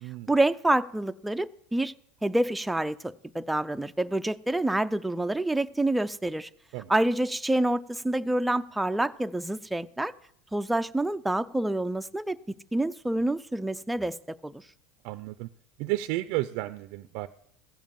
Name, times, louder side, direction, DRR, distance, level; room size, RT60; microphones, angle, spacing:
voice 1, 0.3-1.9 2.2-6.5 6.9-10.1 10.5-12.4 12.7-14.6, right 1 dB, 5° right, 0.5 m, -27 dB
voice 2, 15.0-15.5 15.8-17.3, right 17 dB, 65° right, 0.5 m, -32 dB
15.5 x 7.2 x 7.5 m
supercardioid pair, 115°, 0 cm